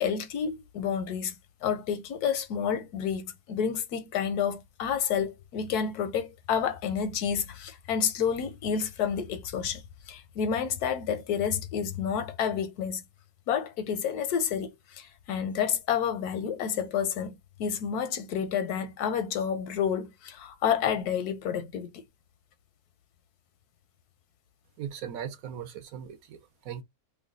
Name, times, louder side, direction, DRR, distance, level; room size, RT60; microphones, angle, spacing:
voice 1, 0.0-1.4 1.6-9.8 10.1-13.0 13.5-22.0, left 7 dB, 85° left, 1.2 m, -29 dB
voice 2, 24.8-26.8, right 9 dB, 70° right, 1.1 m, -39 dB
3.1 x 2.2 x 3.7 m
omnidirectional pair, 1.6 m